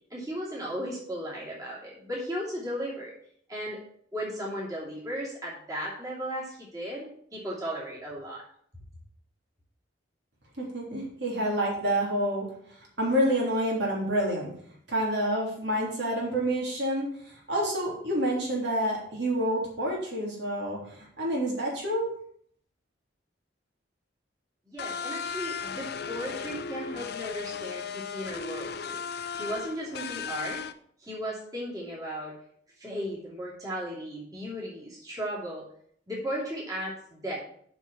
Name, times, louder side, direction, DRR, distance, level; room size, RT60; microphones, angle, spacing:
voice 1, 0.1-3.1 3.5-3.8 4.1-8.4 24.6-29.0 29.3-30.6 31.0-32.4 32.8-35.6 36.1-37.4, equal, 20° right, -6 dB, 2.9 m, -36 dB
voice 2, 10.6-12.4 13.0-14.5 14.9-17.1 17.5-22.1, right 1 dB, 60° right, -3 dB, 3.4 m, -28 dB
sound 1, 24.8-30.7, left 6 dB, 55° left, 0.5 m, -36 dB
7.1 x 6.1 x 7.2 m, 0.62 s
head